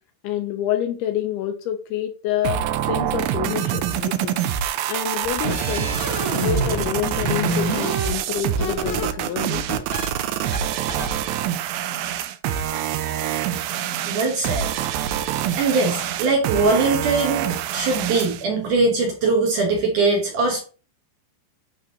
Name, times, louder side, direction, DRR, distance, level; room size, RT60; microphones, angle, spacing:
voice 1, 0.2-4.4 4.9-5.9 6.3-9.7, left 11 dB, 80° left, 6 dB, 2.4 m, -27 dB
sound 1, 2.4-18.4, right 10 dB, 85° right, 2.1 m, -26 dB
sound 2, 5.2-6.9 7.1-9.1 9.4-10.1 10.5-10.6 10.9-11.1, right 1 dB, 25° right, 0.9 m, -28 dB
voice 2, 14.1-14.7 15.6-20.6, right 3 dB, 65° right, 0 dB, 2.1 m, -21 dB
11.0 x 3.7 x 2.8 m, 0.36 s
omnidirectional pair, 4.9 m